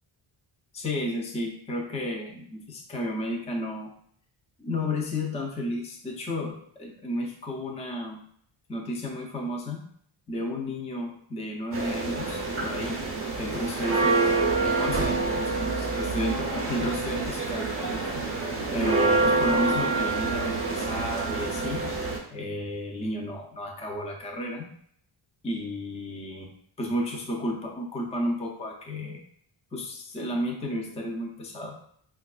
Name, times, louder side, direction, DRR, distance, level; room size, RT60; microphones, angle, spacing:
voice 1, 0.7-3.9 4.6-8.2 8.7-9.9 10.3-13.1 13.4-18.2 18.7-21.9 22.3-24.7 25.4-26.5 26.8-29.2 29.7-31.8, left 1 dB, 15° left, 0 dB, 0.4 m, -32 dB
sound 1, 11.7-22.2, right 3 dB, 25° right, 0.6 m, -27 dB
4.4 x 2.3 x 2.3 m, 0.64 s
wide cardioid pair, 125°, 50 cm